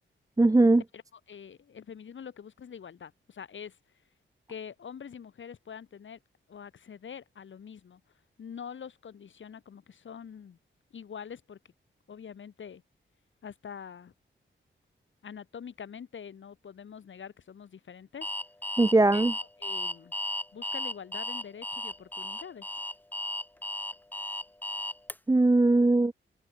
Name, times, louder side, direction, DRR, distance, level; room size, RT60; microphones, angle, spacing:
voice 1, 0.4-0.8 18.8-19.3 25.3-26.1, right 2 dB, 15° right, 1.5 m, -20 dB
voice 2, 1.3-3.8 4.5-6.2 6.5-8.0 8.4-10.6 10.9-11.6 12.1-12.8 13.4-14.1 15.2-18.3 19.1-20.1 20.5-22.7, left 7 dB, 70° left, 5.2 m, -45 dB
Alarm, 18.2-25.1, left 1 dB, 10° left, 1.0 m, -35 dB
wide cardioid pair, 140°, 20 cm